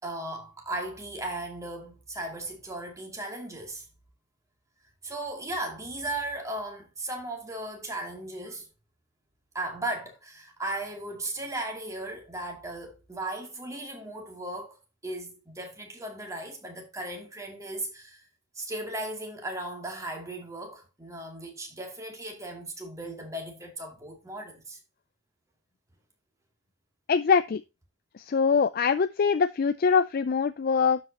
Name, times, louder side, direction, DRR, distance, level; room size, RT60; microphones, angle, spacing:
voice 1, 0.0-3.9 5.0-8.7 9.5-14.8 15.0-18.2 18.6-24.8, right 1 dB, 15° right, 2.5 m, -36 dB
voice 2, 27.1-27.6 28.2-31.0, left 5 dB, 50° left, 0.4 m, -23 dB
12.0 x 5.4 x 2.9 m
head